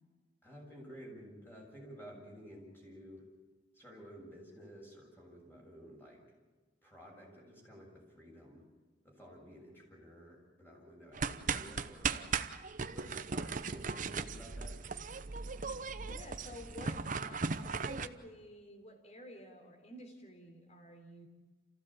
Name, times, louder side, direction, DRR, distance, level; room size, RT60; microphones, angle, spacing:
voice 1, 0.4-3.3 3.7-6.2 6.8-8.7 9.0-12.3 12.9-14.8, equal, 10° left, -1 dB, 7.0 m, -53 dB
sound 1, 11.1-18.1, right 5 dB, 45° right, 0.9 m, -37 dB
voice 2, 16.0-21.3, left 1 dB, 35° left, 4 dB, 3.6 m, -51 dB
27.5 x 16.0 x 8.8 m, 1.3 s
head